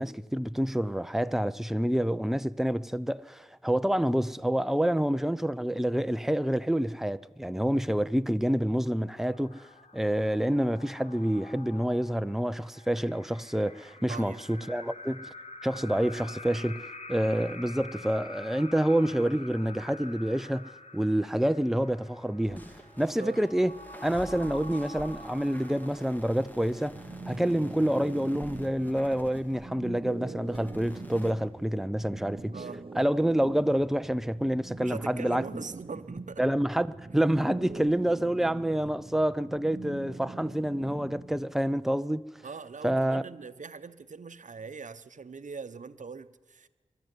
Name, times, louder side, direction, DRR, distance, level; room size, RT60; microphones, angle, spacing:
voice 1, 0.0-9.7 9.9-15.2 15.6-22.6 23.0-27.0 27.3-32.6 32.9-35.6 36.4-42.2 42.8-43.2, right 1 dB, 5° right, 0.6 m, -28 dB
sound 1, 9.0-26.4, left 2 dB, 55° left, 2.0 m, -47 dB
voice 2, 14.1-14.4 23.2-23.4 32.5-32.8 34.8-36.4 42.4-46.7, right 5 dB, 65° right, 0.9 m, -41 dB
sound 2, 22.4-29.9 30.4-31.3, equal, 15° left, 2.6 m, -47 dB
sound 3, 26.9-41.5, right 3 dB, 40° right, 1.0 m, -43 dB
22.5 x 12.5 x 9.6 m
wide cardioid pair, 55°, 14 cm